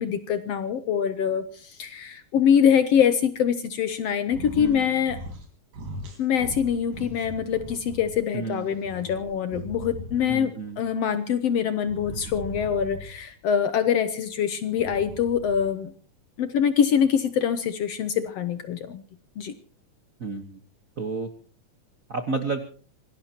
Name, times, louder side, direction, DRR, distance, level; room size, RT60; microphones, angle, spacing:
voice 1, 0.0-5.2 6.2-15.9 16.4-19.0 19.4-19.5, left 8 dB, 65° left, 11 dB, 1.7 m, -24 dB
sound 1, 4.2-4.8 5.0-5.5 5.7-8.1 8.5-10.5 11.8-13.2 14.7-15.7, right 1 dB, 90° right, 5.4 m, -39 dB
voice 2, 4.6-4.9 8.3-8.7 10.3-10.8 12.1-12.3 20.2-20.6 21.0-21.3 22.1-22.6, right 4 dB, 55° right, 5 dB, 0.9 m, -31 dB
25.5 x 18.0 x 2.9 m, 0.39 s
omnidirectional pair, 3.6 m